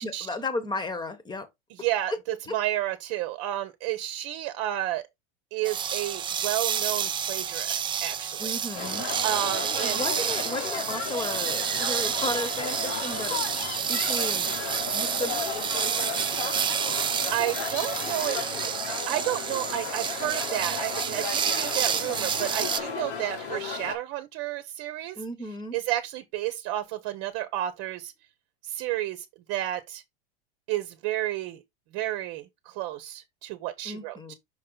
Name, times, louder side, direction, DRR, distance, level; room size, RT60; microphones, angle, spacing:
voice 1, 0.0-1.5 2.5-2.6 8.4-9.1 9.8-13.4 13.9-14.6 14.9-15.6 25.1-25.8 33.8-34.3, left 2 dB, 15° left, 1.3 m, -34 dB
voice 2, 1.8-5.0 5.5-8.5 9.2-10.0 17.3-25.2 25.7-28.1 28.6-30.0 30.7-31.6 31.9-34.3, right 14 dB, 50° right, 1.0 m, -31 dB
sound 1, 5.6-22.8, right 8 dB, 15° right, 0.4 m, -29 dB
sound 2, 8.7-23.9, left 5 dB, 85° left, 2.2 m, -34 dB
6.2 x 4.3 x 4.0 m
supercardioid pair, 130°, 31 cm